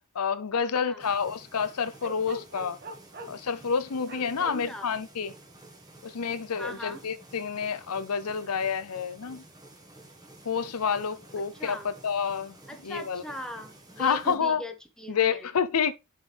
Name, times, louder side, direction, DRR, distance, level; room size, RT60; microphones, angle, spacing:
voice 1, 0.1-2.8 3.3-5.3 6.0-9.4 10.4-12.6 12.8-13.2 14.0-14.6 15.1-15.9, left 6 dB, 80° left, 0.6 m, -29 dB
sound 1, 1.0-14.4, right 1 dB, 15° right, 1.7 m, -52 dB
Bark, 2.0-3.4 4.1-4.6, right 1 dB, 45° right, 1.8 m, -40 dB
voice 2, 4.4-4.9 6.6-7.0 11.4-11.9 12.7-15.5, equal, 5° left, 1.2 m, -40 dB
7.1 x 5.8 x 3.4 m
head